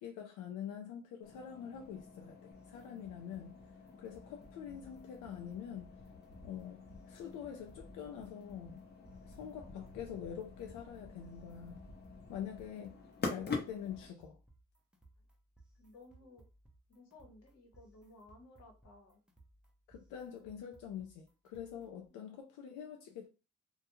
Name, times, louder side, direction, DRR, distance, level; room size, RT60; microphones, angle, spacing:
voice 1, 0.0-3.6 4.0-5.9 6.4-8.8 9.3-11.8 12.3-14.4 19.9-23.3, left 8 dB, 90° left, 0.5 m, -45 dB
sound 1, 1.2-14.1, left 4 dB, 35° left, 0.7 m, -47 dB
sound 2, 2.5-22.1, right 2 dB, 5° right, 0.6 m, -64 dB
voice 2, 15.8-16.4 16.9-19.2 22.1-22.2, left 2 dB, 60° left, 1.0 m, -58 dB
2.2 x 2.2 x 2.9 m
cardioid pair, 90°, 30 cm